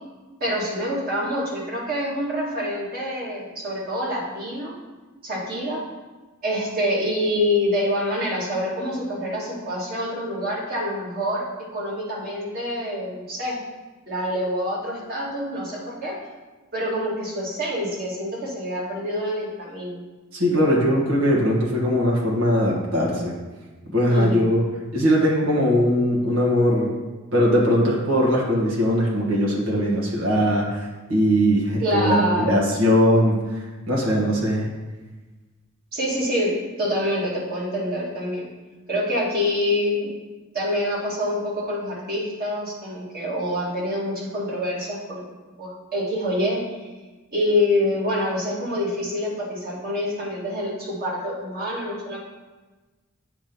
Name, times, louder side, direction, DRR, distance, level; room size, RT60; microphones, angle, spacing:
voice 1, 0.4-4.7 5.2-5.8 6.4-11.5 11.7-13.6 14.1-16.2 16.7-20.0 24.1-24.4 31.8-32.7 35.9-38.5 38.9-40.1 40.5-45.2 45.6-46.9 47.3-52.2, left 1 dB, 45° right, -6 dB, 1.9 m, -26 dB
voice 2, 20.3-23.3 23.9-24.6 24.9-26.9 27.3-30.8 31.1-33.4 33.9-34.6, equal, 80° right, -4 dB, 1.4 m, -20 dB
8.2 x 3.0 x 5.2 m, 1.2 s
head